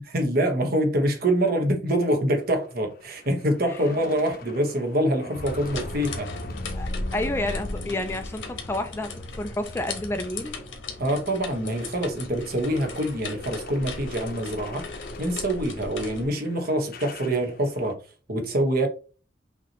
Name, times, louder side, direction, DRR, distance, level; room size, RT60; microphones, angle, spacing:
voice 1, 0.1-6.3 11.0-14.8 15.2-18.0 18.3-18.9, right 1 dB, 55° right, 1.3 m, -25 dB
sound 1, 2.3-10.7 11.1-17.9, left 3 dB, 55° left, 0.8 m, -44 dB
sound 2, 5.3-16.3, left 2 dB, 90° left, 1.3 m, -36 dB
voice 2, 6.7-9.1 9.4-10.6, left 1 dB, 15° left, 0.4 m, -30 dB
5.8 x 2.9 x 3.0 m
head